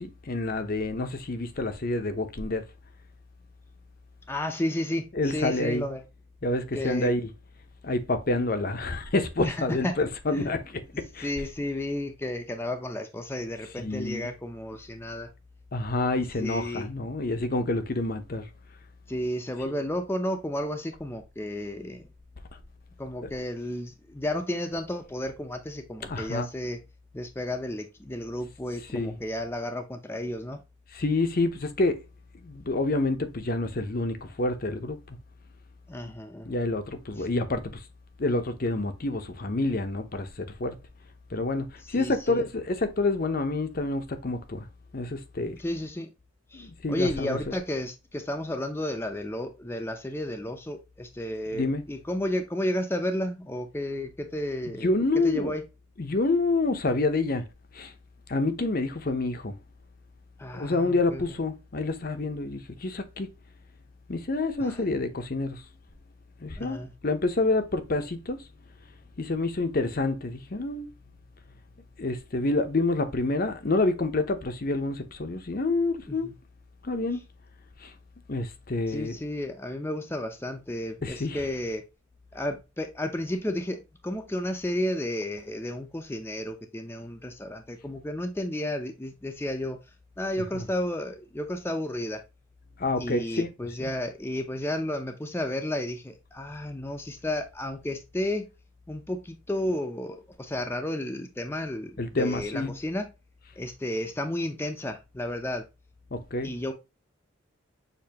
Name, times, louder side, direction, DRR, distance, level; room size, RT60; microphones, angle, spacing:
voice 1, 0.0-2.7 5.1-5.8 6.4-7.3 7.8-11.3 13.8-14.3 15.7-18.5 23.2-23.3 26.0-26.5 28.9-29.1 30.9-32.0 32.3-35.2 36.4-37.9 38.2-40.8 41.3-44.7 44.9-45.6 46.5-47.6 51.5-51.8 54.8-55.5 56.0-57.5 57.7-57.9 58.3-59.5 60.5-63.3 64.1-65.7 66.4-68.5 69.2-70.9 72.0-76.3 76.8-77.2 77.8-77.9 78.3-79.2 81.0-81.5 90.5-90.7 92.8-93.5 93.8-93.9 102.0-102.7 106.1-106.5, left 2 dB, 45° left, 0.8 m, -28 dB
voice 2, 4.3-6.0 6.7-7.1 9.4-9.6 9.8-9.9 10.3-10.5 11.2-15.3 16.4-16.9 19.1-22.1 23.0-26.8 27.1-30.6 35.9-36.5 42.0-42.5 45.6-46.1 46.5-54.9 55.2-55.6 60.4-61.2 64.6-64.8 66.6-66.9 76.1-76.3 78.9-81.8 82.3-89.8 90.2-92.2 93.0-98.5 98.9-103.1 103.6-105.6 106.4-106.7, left 1 dB, 10° left, 0.6 m, -32 dB
6.7 x 2.8 x 2.8 m
head